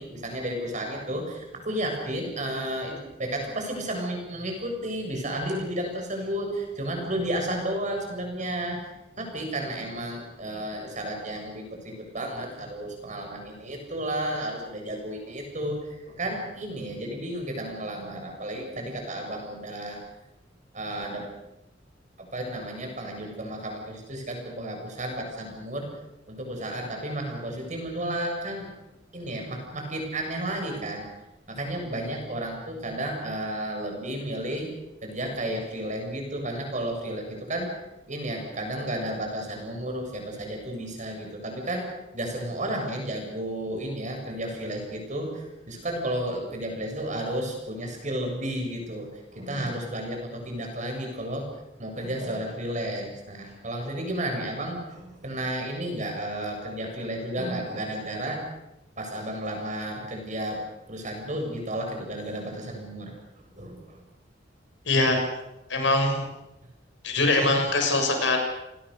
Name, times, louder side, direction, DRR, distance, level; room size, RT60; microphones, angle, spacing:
voice 1, 0.0-8.8 9.2-20.0 20.7-21.3 22.2-25.9 26.3-28.7 29.1-31.1 31.5-34.7 35.0-37.7 38.1-41.9 42.1-51.5 51.8-58.4 59.0-64.0, right 1 dB, 40° right, 2 dB, 7.4 m, -32 dB
voice 2, 64.9-65.2 65.7-66.3 67.0-68.4, left 2 dB, 85° left, 3 dB, 6.9 m, -22 dB
29.5 x 20.0 x 6.7 m, 0.93 s
head